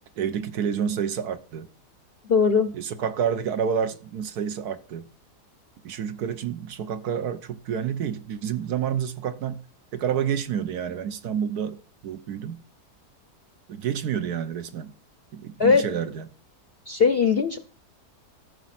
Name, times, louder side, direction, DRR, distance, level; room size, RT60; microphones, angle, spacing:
voice 1, 0.2-1.7 2.7-5.1 5.8-9.6 9.9-11.8 12.0-12.6 13.7-14.9 15.3-16.3, right 8 dB, 70° right, 1.4 m, -29 dB
voice 2, 2.3-2.7 15.6-15.8 16.9-17.6, left 5 dB, 50° left, 0.8 m, -19 dB
13.5 x 6.4 x 5.9 m
omnidirectional pair, 1.8 m